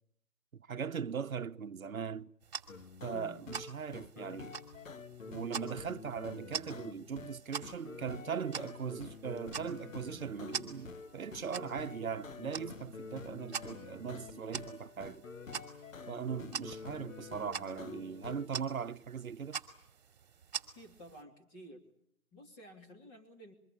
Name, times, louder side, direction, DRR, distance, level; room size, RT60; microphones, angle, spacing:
voice 1, 0.5-2.3 3.0-4.6 5.3-15.2 16.1-19.6, right 6 dB, 70° right, 1.2 m, -39 dB
sound 1, 2.4-21.2, right 7 dB, 30° right, 2.6 m, -46 dB
sound 2, 2.7-18.5, left 5 dB, 60° left, 1.1 m, -48 dB
voice 2, 3.1-3.5 20.7-21.8 22.3-23.5, equal, 15° left, 2.9 m, -53 dB
sound 3, 12.3-18.7, left 1 dB, 30° left, 5.8 m, -66 dB
25.5 x 23.5 x 8.7 m
hypercardioid pair, 165°, 44 cm